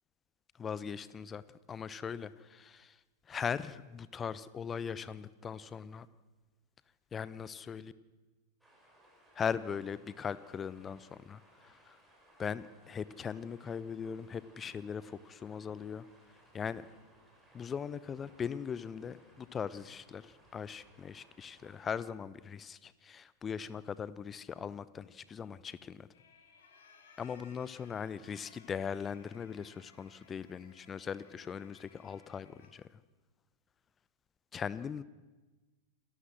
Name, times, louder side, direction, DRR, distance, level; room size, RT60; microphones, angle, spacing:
voice 1, 0.6-1.4 1.7-3.0 3.3-6.1 7.1-7.9 9.3-12.0 12.4-16.0 16.5-16.8 17.5-26.1 27.2-33.0 34.5-35.0, left 7 dB, 20° left, 17 dB, 0.8 m, -40 dB
sound 1, 8.6-21.9, right 1 dB, ahead, 5.4 m, -64 dB
sound 2, 26.1-32.7, left 4 dB, 60° left, 4.3 m, -62 dB
28.0 x 13.0 x 7.5 m, 1.2 s
figure-of-eight pair, 90°, 0 cm